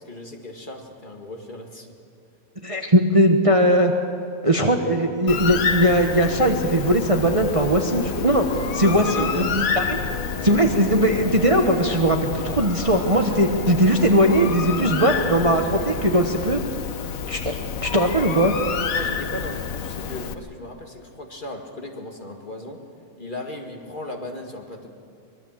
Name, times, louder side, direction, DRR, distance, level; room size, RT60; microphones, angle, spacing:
voice 1, 0.0-1.9 8.8-9.4 14.9-15.9 18.8-22.8 23.2-24.9, left 1 dB, 35° left, 2 dB, 2.2 m, -36 dB
voice 2, 2.6-3.9 4.4-8.4 8.7-10.0 10.4-16.6 17.3-18.5, right 1 dB, 25° right, 3 dB, 1.2 m, -19 dB
Bird, 5.3-20.3, left 7 dB, 70° left, 1.3 m, -29 dB
sound 1, 6.1-17.6, left 1 dB, 10° left, 7.5 m, -36 dB
24.5 x 21.0 x 7.5 m, 2.5 s
omnidirectional pair, 1.5 m